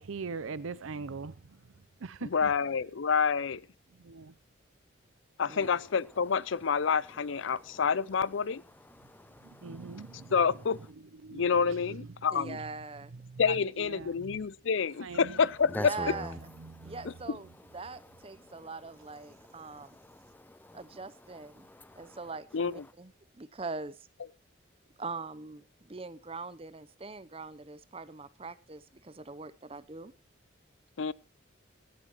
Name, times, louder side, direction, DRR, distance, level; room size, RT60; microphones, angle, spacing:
voice 1, 0.0-1.6 2.0-2.5 4.0-4.3 9.6-10.3 11.2-12.0 13.2-13.4 13.8-14.4 15.0-15.4 16.6-17.0, right 4 dB, 85° right, 0.6 m, -41 dB
voice 2, 2.2-3.6 5.4-8.6 10.3-10.8 11.3-12.6 13.4-15.9 17.3-17.4 22.5-22.7 31.0-31.1, left 6 dB, 75° left, 0.5 m, -28 dB
voice 3, 9.0-10.3 15.7-16.3 16.8-16.9 18.4-18.7 19.3-20.8 21.6-22.2, left 1 dB, 10° left, 0.5 m, -44 dB
voice 4, 12.3-13.6 15.7-16.4 16.8-20.0 20.7-21.7 22.0-23.1 23.4-24.1 25.0-30.1, right 4 dB, 30° right, 0.7 m, -42 dB
17.5 x 11.0 x 3.0 m
head